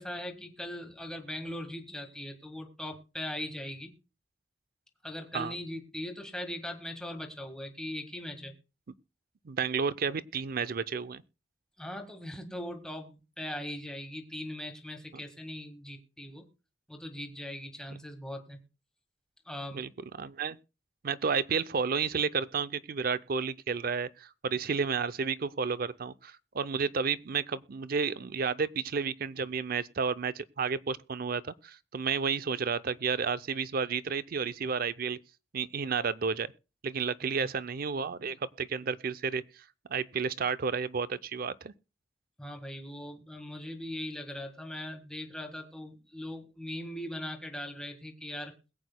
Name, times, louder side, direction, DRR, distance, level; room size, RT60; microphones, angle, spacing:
voice 1, 0.0-3.9 5.0-8.5 11.8-16.5 16.9-18.6 19.4-19.9 37.2-37.5 42.4-48.5, left 1 dB, 5° left, 1.7 m, -40 dB
voice 2, 9.4-11.2 19.7-19.9 20.2-20.6 21.0-35.2 35.5-36.5 36.8-39.4 39.9-41.7, right 5 dB, 55° right, 0.5 m, -31 dB
21.5 x 8.3 x 2.2 m
head